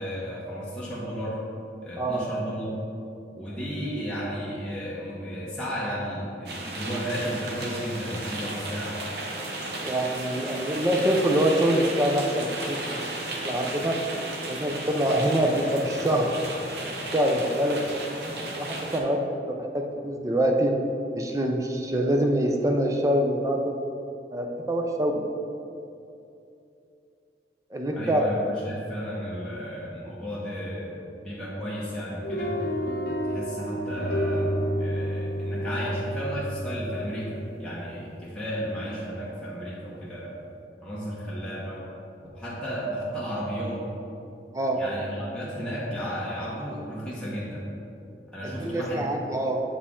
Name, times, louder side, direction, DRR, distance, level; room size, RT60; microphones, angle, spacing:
voice 1, 0.0-1.4 1.8-2.8 3.4-9.0 27.9-32.6 33.3-40.3 40.8-41.8 42.3-43.8 44.8-47.7 48.3-49.0, equal, 5° left, -9 dB, 0.9 m, -33 dB
sound 1, 6.5-19.0, right 2 dB, 65° right, 0.8 m, -34 dB
voice 2, 9.8-13.1 13.4-13.9 14.5-16.3 17.1-17.8 18.5-19.2 19.7-20.7 21.1-23.7 24.3-25.3 27.7-28.3 44.5-44.8 48.4-49.6, right 1 dB, 20° right, 2 dB, 0.5 m, -25 dB
sound 2, 32.2-38.5, equal, 55° left, 0.7 m, -30 dB
7.0 x 4.5 x 3.7 m, 2.7 s
head